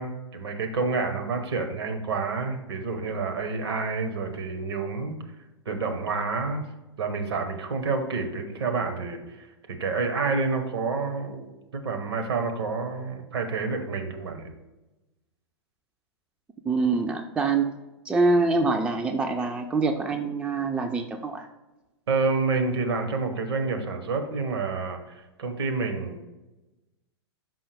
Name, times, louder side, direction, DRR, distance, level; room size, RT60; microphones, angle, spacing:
voice 1, 0.0-5.2 5.6-6.6 7.0-9.5 9.8-14.5 22.1-26.2, right 4 dB, 65° right, 5 dB, 1.1 m, -28 dB
voice 2, 16.7-17.7 18.1-21.5, right 3 dB, 5° right, 6 dB, 0.4 m, -25 dB
5.5 x 5.5 x 3.4 m, 1.1 s
figure-of-eight pair, 105°, 14 cm